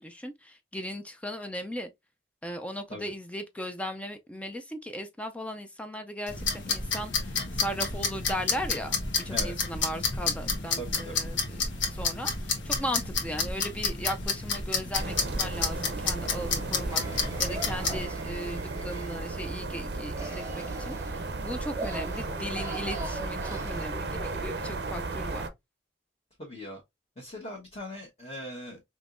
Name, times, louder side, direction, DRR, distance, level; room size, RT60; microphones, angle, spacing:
voice 1, 0.0-1.9 2.4-11.6 11.9-25.5, equal, 5° left, 0.4 m, -37 dB
sound 1, 6.3-18.1, left 4 dB, 85° left, 1.2 m, -30 dB
voice 2, 10.8-11.2 26.4-26.8 27.2-28.8, equal, 35° left, 1.2 m, -40 dB
sound 2, 15.0-25.5, right 3 dB, 60° right, 0.6 m, -35 dB
sound 3, 16.9-19.4 20.1-24.6, right 2 dB, 15° right, 0.8 m, -41 dB
5.3 x 3.0 x 2.5 m
head